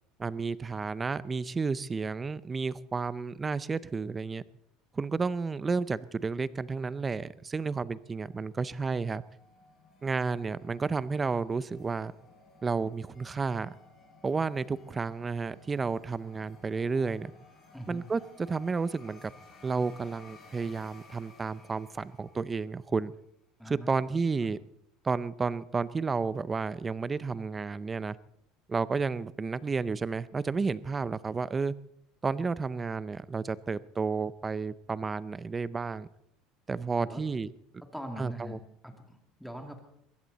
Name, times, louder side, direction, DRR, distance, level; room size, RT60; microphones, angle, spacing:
voice 1, 0.2-4.4 4.9-9.2 10.0-12.1 12.6-13.7 14.2-17.3 17.9-18.2 18.5-19.3 19.6-23.1 23.7-24.6 25.0-28.2 28.7-31.7 32.2-36.1 36.7-37.5 38.2-38.6, right 4 dB, 15° right, 18 dB, 0.5 m, -31 dB
sound 1, 8.2-22.9, left 3 dB, 30° left, 6.0 m, -56 dB
voice 2, 23.6-24.6 37.0-37.2 37.9-38.6 38.8-39.8, equal, ahead, 4 dB, 2.2 m, -43 dB
22.0 x 15.5 x 4.1 m, 0.75 s
cardioid pair, 150°, 0 cm